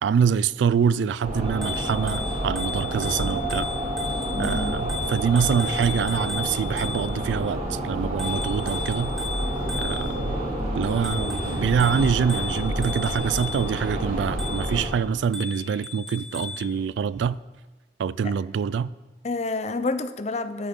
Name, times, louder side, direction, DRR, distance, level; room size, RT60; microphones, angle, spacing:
voice 1, 0.0-3.7 4.4-9.1 9.8-10.4 10.7-17.4 18.0-18.9, right 7 dB, 75° right, 0.3 m, -25 dB
sound 1, 1.2-14.8, right 1 dB, 45° right, 3.4 m, -29 dB
Bicycle bell, 1.5-7.3 8.2-10.3 10.8-13.8 14.4-14.8 15.3-16.7, left 5 dB, 5° left, 1.8 m, -35 dB
voice 2, 4.3-4.8 10.8-10.9 18.2-18.3 19.2-20.7, left 3 dB, 35° left, 0.5 m, -29 dB
13.5 x 8.6 x 3.7 m
head